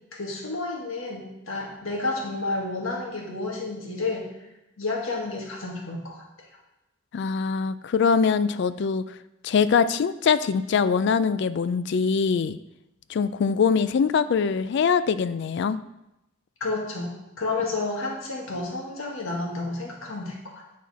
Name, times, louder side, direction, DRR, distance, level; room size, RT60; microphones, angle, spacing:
voice 1, 0.1-4.3 4.8-6.2 16.6-20.6, left 3 dB, 90° left, -1 dB, 1.7 m, -31 dB
voice 2, 7.1-9.0 9.4-12.6 13.1-15.8, left 6 dB, 60° left, 14 dB, 0.3 m, -23 dB
9.4 x 4.2 x 4.2 m, 0.90 s
head